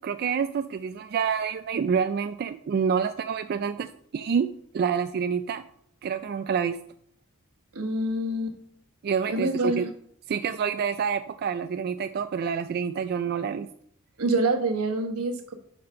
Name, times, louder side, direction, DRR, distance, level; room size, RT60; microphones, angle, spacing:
voice 1, 0.0-5.6 6.0-6.8 9.0-9.9 10.3-13.7, right 6 dB, 45° right, 10 dB, 0.3 m, -27 dB
voice 2, 7.7-8.6 9.3-9.9 14.2-15.5, right 2 dB, 80° right, 7 dB, 1.2 m, -26 dB
8.4 x 4.3 x 6.3 m, 0.68 s
head